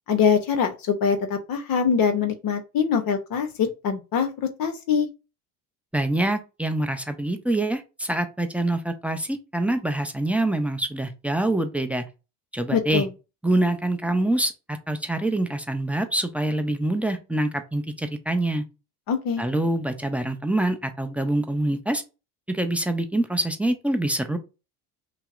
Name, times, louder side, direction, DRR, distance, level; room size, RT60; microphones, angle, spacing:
voice 1, 0.1-4.3 4.6-5.1 12.7-13.1 19.1-19.4, left 6 dB, 50° left, 6 dB, 0.7 m, -23 dB
voice 2, 5.9-12.0 12.5-13.1 13.4-18.6 19.4-22.0 22.5-24.4, right 1 dB, 5° right, 8 dB, 0.4 m, -25 dB
5.6 x 2.0 x 2.4 m, 0.29 s
hypercardioid pair, 80°, 46 cm